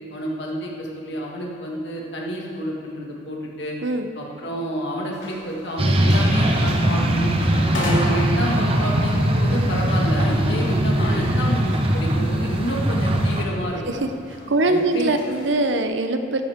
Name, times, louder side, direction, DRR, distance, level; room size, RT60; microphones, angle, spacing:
voice 1, 0.1-3.8 4.2-7.3 7.7-14.0 14.6-15.1, equal, 65° left, -2 dB, 1.9 m, -29 dB
sound 1, 5.1-15.9, left 1 dB, 85° left, 2.3 m, -36 dB
sound 2, 5.8-13.4, right 1 dB, 30° right, 0.9 m, -20 dB
voice 2, 14.5-16.4, right 2 dB, 70° right, 7 dB, 0.8 m, -22 dB
14.0 x 11.0 x 3.7 m, 2.4 s
head